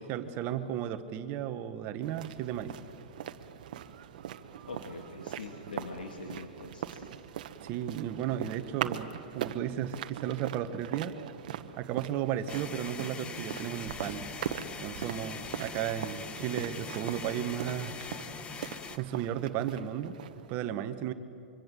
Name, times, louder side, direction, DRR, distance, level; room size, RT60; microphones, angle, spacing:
voice 1, 0.1-2.7 7.6-11.2 11.8-14.3 14.8-18.0 18.9-20.2 20.5-21.1, right 10 dB, 40° right, 10 dB, 1.3 m, -34 dB
sound 1, 2.0-20.6, right 10 dB, 65° right, 1.2 m, -41 dB
voice 2, 4.7-7.1, left 3 dB, 90° left, 2 dB, 2.5 m, -43 dB
sound 2, 12.5-19.0, left 6 dB, 20° left, 1.3 m, -42 dB
25.0 x 24.5 x 7.7 m, 2.7 s
hypercardioid pair, 120°, 5 cm